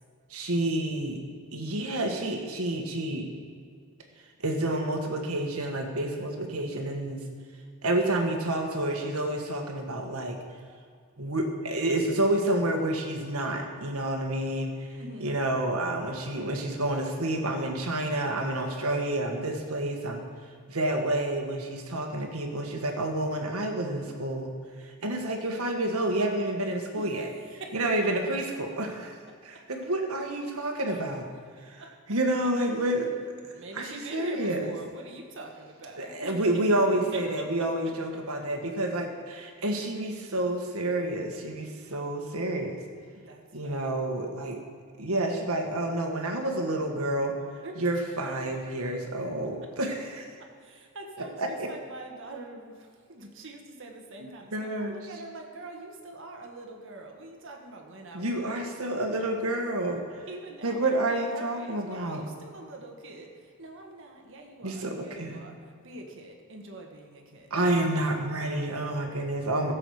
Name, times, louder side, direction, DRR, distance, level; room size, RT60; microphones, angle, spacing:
voice 1, 0.3-1.2 1.5-3.3 4.4-7.2 7.8-10.4 11.2-14.7 15.2-20.3 20.7-24.5 24.8-27.3 27.7-29.2 29.4-31.3 31.7-33.1 33.8-34.7 36.0-42.8 43.5-44.6 45.0-47.3 47.8-50.2 51.4-51.7 54.5-55.0 58.1-60.0 60.6-62.2 64.6-65.4 67.5-69.7, right 1 dB, 85° right, 2 dB, 1.7 m, -29 dB
voice 2, 14.9-15.4 26.9-28.1 30.9-31.0 31.6-32.0 33.5-36.6 37.1-37.5 37.8-38.2 43.2-44.0 47.6-47.8 48.4-49.0 49.6-49.7 50.4-58.7 60.3-67.5, right 2 dB, 60° right, 2 dB, 1.5 m, -44 dB
16.0 x 7.7 x 4.9 m, 2.1 s
head